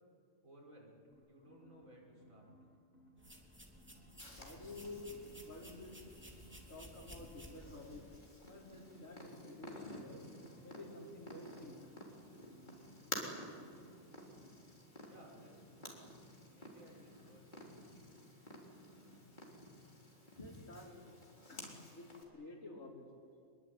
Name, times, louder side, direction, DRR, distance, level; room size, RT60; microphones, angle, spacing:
voice 1, 0.4-2.5 15.0-16.1 16.5-18.2, equal, 85° right, -3 dB, 7.0 m, -60 dB
sound 1, 1.1-3.4 3.7-5.8 6.1-7.6 8.4-14.1 14.3-14.5, equal, 50° left, 6.1 m, -65 dB
sound 2, 3.2-8.3, equal, 10° right, 3.1 m, -56 dB
Purr, 4.2-22.2, left 1 dB, 35° left, 4.0 m, -52 dB
voice 2, 4.3-6.0 6.7-8.1 8.5-10.2 10.6-11.9 20.4-21.2 21.5-23.1, left 2 dB, 80° left, -2 dB, 5.1 m, -51 dB
24.5 x 22.5 x 9.2 m, 2.4 s
omnidirectional pair, 1.4 m